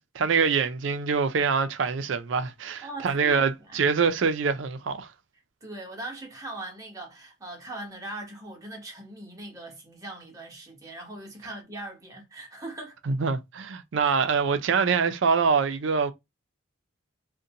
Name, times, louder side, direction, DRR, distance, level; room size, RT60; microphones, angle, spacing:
voice 1, 0.2-5.1 13.1-16.1, right 5 dB, 65° right, 0.4 m, -25 dB
voice 2, 2.6-3.8 5.6-13.0 14.0-14.1, right 2 dB, 15° right, 0.8 m, -40 dB
2.5 x 2.2 x 2.7 m
head